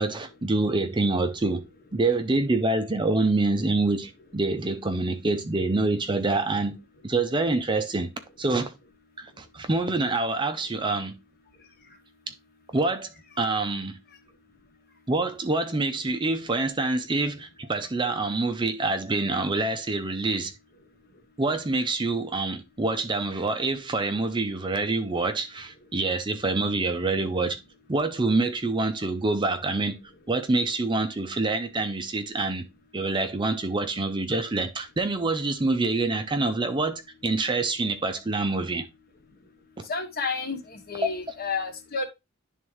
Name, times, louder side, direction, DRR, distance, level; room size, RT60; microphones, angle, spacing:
voice 1, 0.0-1.6 1.9-6.8 7.0-8.1 8.4-8.7 9.2-11.1 12.7-13.1 13.4-14.0 15.1-20.5 21.4-27.6 27.9-30.0 30.3-32.7 32.9-38.9 39.8-39.9 41.0-41.1, right 2 dB, 20° right, 0.5 m, -26 dB
voice 2, 39.9-42.0, left 4 dB, 45° left, 1.2 m, -31 dB
11.0 x 3.6 x 3.1 m
head